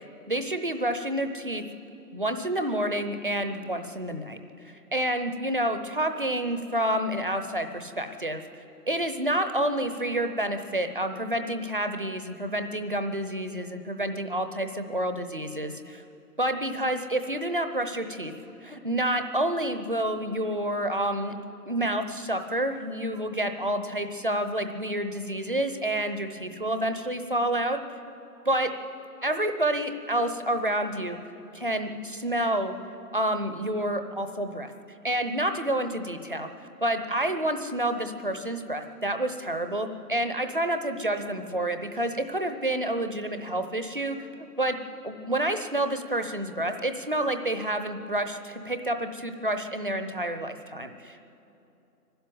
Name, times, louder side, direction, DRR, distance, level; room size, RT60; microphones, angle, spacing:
voice 1, 0.3-1.6 2.1-4.4 4.9-8.4 8.9-16.0 16.4-18.3 18.6-21.3 21.6-27.8 28.4-28.7 29.2-31.2 31.5-32.7 33.1-34.7 35.0-36.5 36.8-44.3 44.6-44.8 45.0-51.2, right 1 dB, 35° right, 8 dB, 0.8 m, -29 dB
22.0 x 12.5 x 9.5 m, 2.9 s
figure-of-eight pair, 165°, 49 cm